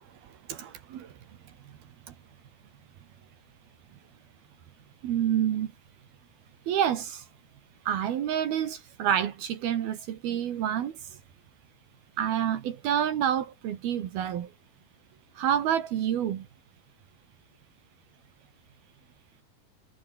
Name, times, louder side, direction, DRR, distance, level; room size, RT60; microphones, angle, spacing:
voice 1, 0.5-1.1 5.0-5.7 6.7-7.2 7.9-10.9 12.2-14.5 15.4-16.5, right 10 dB, 65° right, 3.5 m, -28 dB
omnidirectional pair, 4.9 m